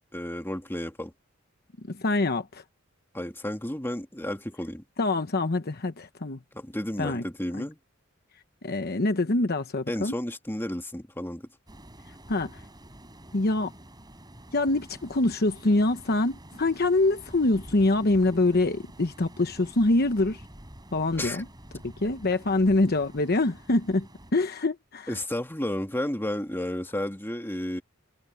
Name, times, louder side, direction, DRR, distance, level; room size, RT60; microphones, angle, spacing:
voice 1, 0.1-1.1 3.1-4.8 6.5-7.8 9.9-11.5 21.1-21.4 25.1-27.8, left 1 dB, 10° left, 2.3 m, -32 dB
voice 2, 1.9-2.6 5.0-6.4 7.0-7.2 7.6-7.7 8.6-10.1 12.3-12.6 13.3-13.7 14.5-20.4 20.9-21.5 21.8-25.2, left 2 dB, 50° left, 1.0 m, -25 dB
sound 1, 11.7-24.3, right 1 dB, 20° right, 4.9 m, -48 dB
head